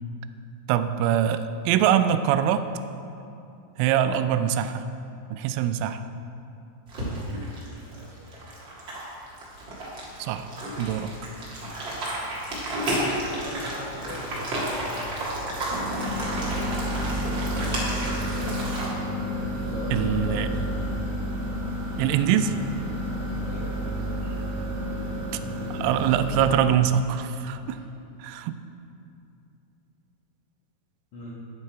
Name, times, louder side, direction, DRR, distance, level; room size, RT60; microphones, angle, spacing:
voice 1, 0.7-2.7 3.8-4.8 5.3-6.0 10.2-10.5 10.8-11.1 19.9-20.5 22.0-22.5 25.8-27.8 28.2-28.6, right 9 dB, 85° right, 10 dB, 3.1 m, -23 dB
sound 1, 6.9-18.9, right 1 dB, 50° right, 1.3 m, -32 dB
voice 2, 7.8-8.3 12.1-12.6 13.2-16.7 17.0-18.6 19.4-20.9 23.4-24.4 25.3-26.1 27.7-27.8 31.1-31.3, left 1 dB, 80° left, -6 dB, 1.7 m, -41 dB
sound 2, 15.7-26.5, equal, 70° right, 2.5 m, -30 dB
11.5 x 9.3 x 4.4 m, 2.7 s
omnidirectional pair, 5.7 m